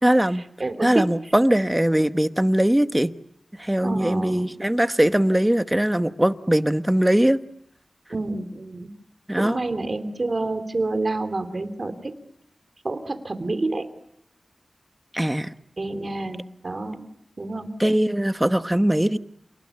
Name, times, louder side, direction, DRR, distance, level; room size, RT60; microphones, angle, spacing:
voice 1, 0.0-0.4 0.8-3.1 3.6-7.4 9.3-9.6 15.1-15.5 17.8-19.2, right 1 dB, 10° right, 11 dB, 1.0 m, -21 dB
voice 2, 0.6-1.1 3.8-4.5 8.1-8.9 9.3-12.1 12.8-13.8 15.8-17.0 17.4-17.7, right 2 dB, 50° right, 8 dB, 3.0 m, -28 dB
28.5 x 19.5 x 9.8 m, 0.78 s
wide cardioid pair, 70°, 0 cm